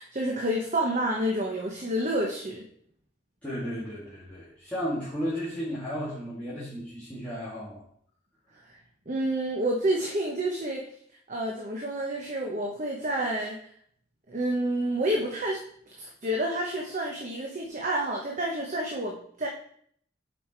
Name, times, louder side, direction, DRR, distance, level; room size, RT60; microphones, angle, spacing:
voice 1, 0.0-2.6 9.1-10.9 11.3-13.6 14.3-15.6 16.0-19.5, right 1 dB, 45° right, -1 dB, 1.0 m, -29 dB
voice 2, 3.4-7.8, equal, 10° left, -11 dB, 2.4 m, -34 dB
7.5 x 5.1 x 4.5 m, 0.63 s
head